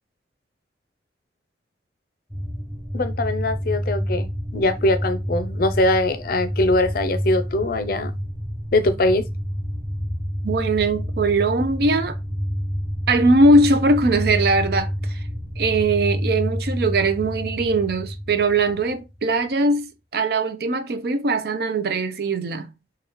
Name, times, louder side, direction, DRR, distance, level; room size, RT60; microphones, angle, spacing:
sound 1, 2.3-19.1, equal, ahead, 0.5 m, -28 dB
voice 1, 2.9-8.1 8.7-9.3, left 2 dB, 55° left, 0.5 m, -22 dB
voice 2, 10.4-12.2 13.1-15.2 15.6-22.7, right 2 dB, 60° right, 0.5 m, -20 dB
4.7 x 2.3 x 2.9 m
head